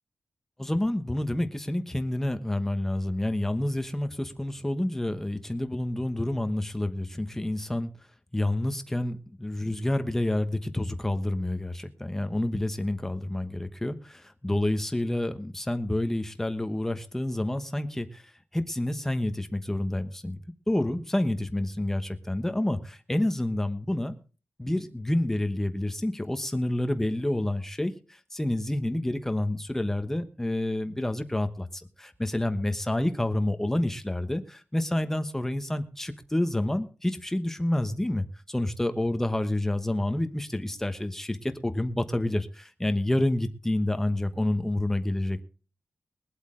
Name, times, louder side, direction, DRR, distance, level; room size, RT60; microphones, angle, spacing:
voice 1, 0.6-7.9 8.3-18.2 18.5-20.4 20.7-24.2 24.6-27.9 28.3-45.4, left 1 dB, 10° left, 9 dB, 1.1 m, -28 dB
21.5 x 8.1 x 3.8 m, 0.36 s
wide cardioid pair, 155°, 5 cm